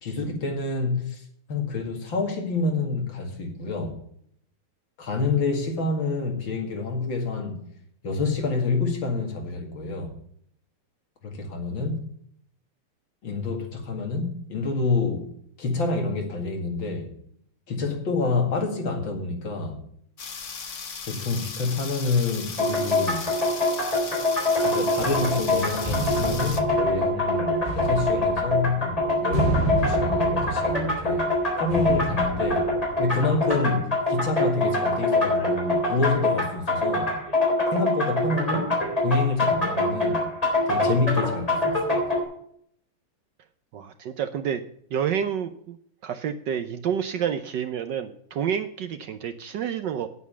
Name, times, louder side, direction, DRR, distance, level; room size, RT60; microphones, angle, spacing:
voice 1, 0.0-1.2 1.5-4.0 5.0-7.7 8.0-10.1 11.2-12.0 13.2-15.3 15.6-17.1 17.7-19.8 21.1-23.3 24.0-24.1 24.6-31.3 31.6-32.7 33.0-37.1 37.7-38.7 39.0-40.2 40.7-42.2, left 3 dB, 60° left, 2.7 m, -27 dB
sound 1, 20.2-26.6, left 5 dB, 45° left, 1.2 m, -37 dB
sound 2, 22.6-42.2, left 1 dB, 15° left, 3.8 m, -25 dB
sound 3, 25.0-33.6, right 2 dB, 15° right, 4.3 m, -31 dB
voice 2, 43.7-44.6 44.9-45.8 46.0-50.1, right 8 dB, 70° right, 1.2 m, -29 dB
9.4 x 8.4 x 6.9 m
omnidirectional pair, 2.4 m